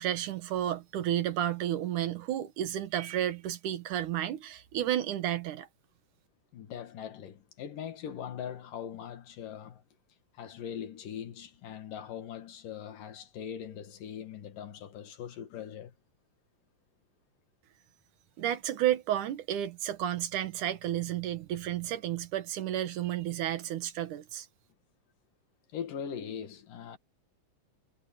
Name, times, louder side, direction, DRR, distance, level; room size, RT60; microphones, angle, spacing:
voice 1, 0.0-5.7 18.4-24.5, right 11 dB, 75° right, 2.8 m, -32 dB
voice 2, 6.5-9.8 10.4-15.9 25.7-27.0, left 8 dB, 90° left, 3.6 m, -41 dB
omnidirectional pair, 3.7 m